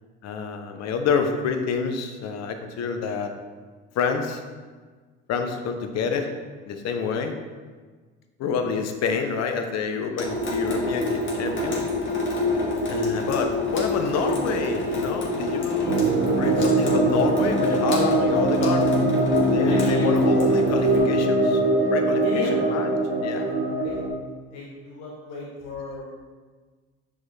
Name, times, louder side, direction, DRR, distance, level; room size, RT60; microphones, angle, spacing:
voice 1, 0.2-3.3 3.9-4.4 5.3-6.3 6.7-7.3 8.4-11.9 12.9-16.0 16.4-18.9 19.5-21.6 21.9-22.2 22.7-22.9 23.2-23.5, left 5 dB, 60° left, 6 dB, 0.8 m, -28 dB
Water tap faucet / Sink (filling or washing) / Drip, 10.2-21.0, left 2 dB, 40° left, 1.5 m, -27 dB
sound 1, 15.9-24.1, right 2 dB, 55° right, 1.2 m, -22 dB
voice 2, 19.7-20.2 22.2-22.8 23.3-23.4 23.8-24.0 24.5-26.1, left 3 dB, 80° left, -4 dB, 1.0 m, -35 dB
6.2 x 4.8 x 3.2 m, 1.4 s
cardioid pair, 95°, 29 cm